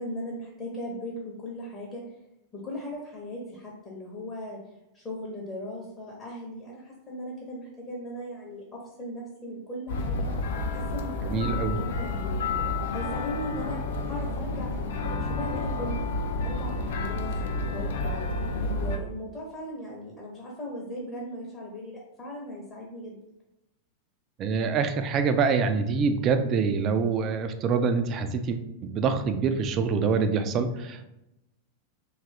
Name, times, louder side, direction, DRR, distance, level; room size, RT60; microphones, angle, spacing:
voice 1, 0.0-2.0 2.5-4.6 4.9-10.3 10.6-12.4 12.9-16.0 16.4-18.3 18.7-23.2, equal, 20° left, -4 dB, 0.7 m, -38 dB
maastricht vrijthof noisy, 9.9-19.0, left 2 dB, 55° left, 0.3 m, -30 dB
voice 2, 11.2-11.8 24.4-31.1, right 5 dB, 35° right, 8 dB, 0.3 m, -25 dB
2.6 x 2.4 x 3.2 m, 0.87 s
figure-of-eight pair, 90°, 0 cm